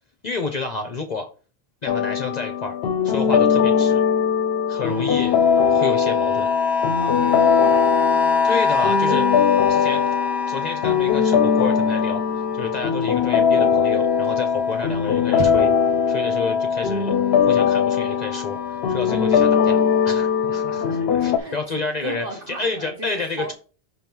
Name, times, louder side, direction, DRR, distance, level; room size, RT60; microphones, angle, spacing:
voice 1, 0.2-1.3 1.8-2.8 3.0-4.0 4.7-5.4 5.7-6.5 8.4-10.0 10.5-15.7 16.1-20.8 21.2-23.5, left 4 dB, 45° left, 6 dB, 0.8 m, -30 dB
sound 1, 1.9-21.4, left 7 dB, 75° left, 0.8 m, -20 dB
voice 2, 1.9-2.2 6.9-8.4 20.5-23.5, right 3 dB, 60° right, 1 dB, 1.7 m, -37 dB
sound 2, 4.8-15.9 16.2-20.8 21.5-21.6, left 5 dB, ahead, 0.4 m, -28 dB
sound 3, 12.1-20.4, right 3 dB, 30° right, 0.8 m, -42 dB
6.0 x 3.0 x 5.2 m, 0.37 s
omnidirectional pair, 1.0 m